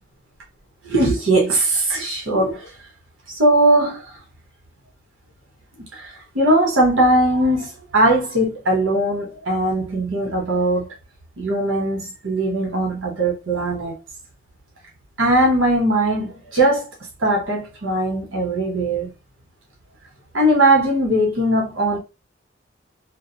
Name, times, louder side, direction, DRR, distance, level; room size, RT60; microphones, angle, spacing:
voice 1, 0.8-2.7 3.4-4.1 5.9-10.9 11.4-13.9 15.2-16.9 17.2-19.1 20.3-22.0, right 1 dB, 80° right, 1.1 m, -19 dB
2.3 x 2.3 x 2.8 m
head